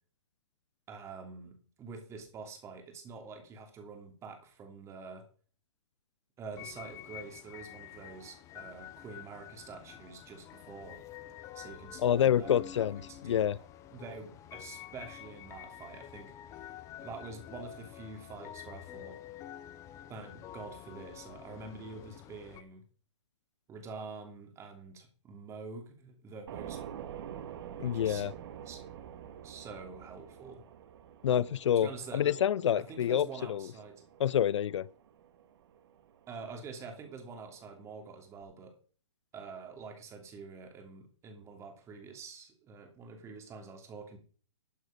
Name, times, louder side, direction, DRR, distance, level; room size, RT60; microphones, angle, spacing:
voice 1, 0.9-5.3 6.4-11.0 11.5-13.7 13.9-16.3 17.0-19.2 20.1-22.8 23.7-26.8 27.8-28.2 28.6-28.8 29.4-30.6 31.3-31.5 31.8-32.4 32.9-34.0 36.3-38.7 39.3-44.2, right 4 dB, 15° right, 3.0 m, -46 dB
sound 1, 6.5-22.6, left 12 dB, 20° left, 0.8 m, -48 dB
voice 2, 12.0-13.6 27.8-28.3 31.2-33.7 34.2-34.9, left 10 dB, 65° left, 0.4 m, -28 dB
sound 2, 26.5-38.4, right 9 dB, 50° right, 1.7 m, -48 dB
12.5 x 7.9 x 5.2 m
hypercardioid pair, 140°, 16 cm